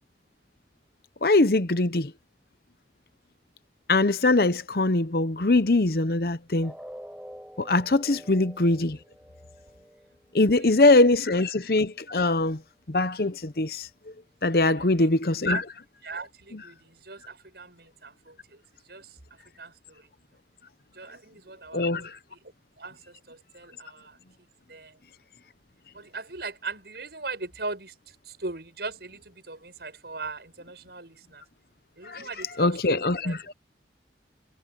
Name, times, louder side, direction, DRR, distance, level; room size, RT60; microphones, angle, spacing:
voice 1, 1.2-2.1 3.9-6.7 7.6-9.0 10.3-12.6 12.9-13.9 14.4-15.6 21.7-22.1 32.1-32.2 32.6-33.3, left 2 dB, 55° left, 0.9 m, -22 dB
sound 1, 6.6-12.6 13.0-13.2 13.6-13.7, equal, 5° right, 7.4 m, -48 dB
voice 2, 8.1-8.4 10.5-10.8 11.3-11.4 14.6-15.2 15.5-15.6 16.0-20.1 20.9-22.4 22.8-24.2 24.7-25.0 25.9-31.4 32.0-33.4, right 3 dB, 65° right, 6.4 m, -40 dB
head